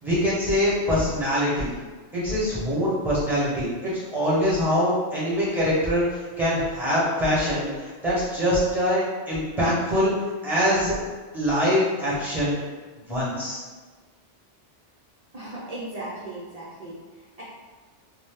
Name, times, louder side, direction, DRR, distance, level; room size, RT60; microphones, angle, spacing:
voice 1, 0.0-1.7 2.1-6.0 6.4-10.1 10.4-10.9 11.3-12.5 13.1-13.6, equal, ahead, -9 dB, 1.0 m, -23 dB
voice 2, 15.3-17.0, right 1 dB, 45° right, -8 dB, 0.5 m, -36 dB
2.6 x 2.2 x 3.5 m, 1.4 s
omnidirectional pair, 1.2 m